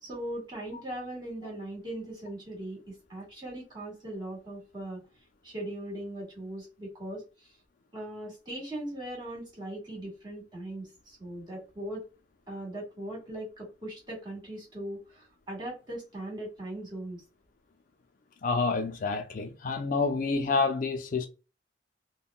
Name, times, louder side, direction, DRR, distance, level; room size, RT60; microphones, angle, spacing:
voice 1, 0.0-5.0 5.4-7.5 7.9-12.1 12.5-17.2, right 1 dB, 20° right, 1.5 m, -39 dB
voice 2, 18.4-21.3, left 4 dB, 45° left, 0.4 m, -28 dB
3.6 x 2.2 x 2.3 m
head